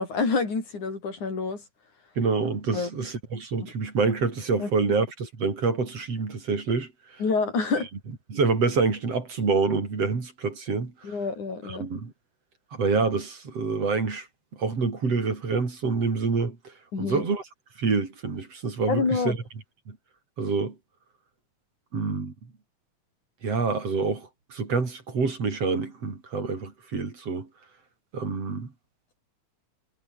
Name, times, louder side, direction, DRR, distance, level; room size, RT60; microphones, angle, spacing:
voice 1, 0.0-1.6 2.7-2.9 4.6-4.7 7.2-7.9 11.0-11.9 16.9-17.2 18.9-19.4, left 4 dB, 85° left, 7.4 m, -27 dB
voice 2, 2.2-7.2 8.3-11.2 11.6-12.1 12.7-14.3 14.5-17.4 17.8-19.4 19.9-20.0 20.4-20.8 21.9-22.3 23.4-27.5 28.1-28.7, right 4 dB, 55° right, 5.4 m, -27 dB
omnidirectional pair, 3.4 m